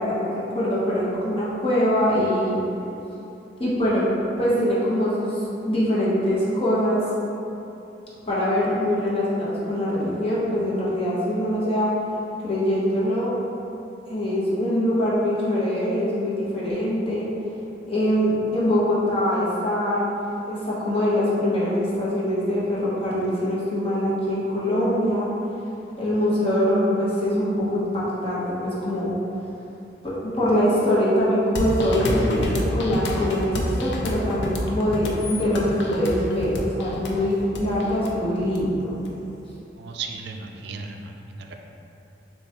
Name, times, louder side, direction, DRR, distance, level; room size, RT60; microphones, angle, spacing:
voice 1, 0.0-2.6 3.6-4.0 4.4-7.0 8.3-11.9 12.4-13.3 14.1-17.3 17.8-25.3 26.0-29.1 30.0-39.0, equal, 35° left, -8 dB, 1.0 m, -23 dB
sound 1, 31.6-39.1, left 1 dB, 75° left, 0.5 m, -28 dB
voice 2, 39.8-41.5, right 4 dB, 65° right, 3 dB, 0.3 m, -35 dB
6.5 x 2.3 x 2.9 m, 2.9 s
head